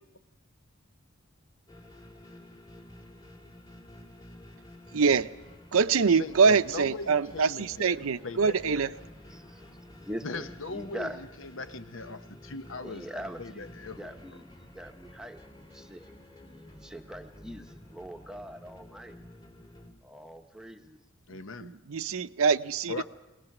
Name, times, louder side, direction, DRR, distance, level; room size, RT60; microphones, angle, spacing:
sound 1, 1.7-19.9, left 1 dB, 20° left, 2.7 m, -51 dB
voice 1, 4.9-5.3 5.7-8.9 21.9-23.0, right 5 dB, 75° right, 13 dB, 0.6 m, -24 dB
voice 2, 6.1-9.1 10.2-14.4 21.3-21.8 22.9-23.0, left 3 dB, 60° left, 10 dB, 1.0 m, -40 dB
voice 3, 9.3-11.2 12.8-16.2 16.4-19.2 20.0-21.0, equal, 5° right, 5 dB, 1.0 m, -43 dB
23.5 x 18.5 x 6.0 m, 1.0 s
head